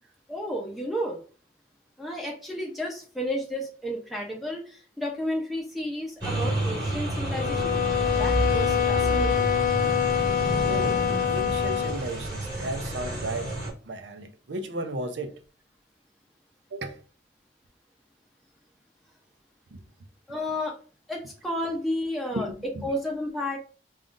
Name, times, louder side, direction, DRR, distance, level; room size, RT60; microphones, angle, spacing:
voice 1, 0.3-1.2 2.0-7.7 8.1-9.5 20.3-20.7 21.1-22.5 22.8-23.6, equal, ahead, 0.6 m, -32 dB
sound 1, 6.2-13.7, right 1 dB, 25° right, 2.0 m, -29 dB
sound 2, 7.3-12.1, left 10 dB, 45° left, 0.4 m, -25 dB
voice 2, 10.7-15.3 16.7-17.0 19.7-19.8 22.3-22.9, right 2 dB, 85° right, 0.6 m, -35 dB
5.4 x 2.4 x 2.4 m
head